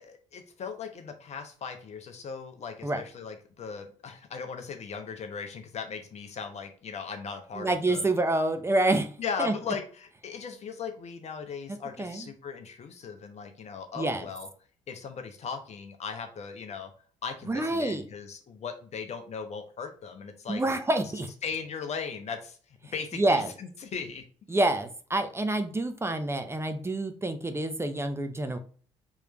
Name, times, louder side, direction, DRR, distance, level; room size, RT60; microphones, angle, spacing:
voice 1, 0.0-8.1 9.2-14.5 14.9-16.9 17.2-20.6 21.4-24.2, left 6 dB, 45° left, 7 dB, 0.9 m, -38 dB
voice 2, 7.6-9.1 9.4-9.5 12.0-12.3 14.0-14.3 17.5-18.0 20.5-21.3 23.1-23.5 24.5-28.6, right 2 dB, 15° right, 7 dB, 0.7 m, -27 dB
4.8 x 3.3 x 3.0 m, 0.42 s
hypercardioid pair, 50°, 15 cm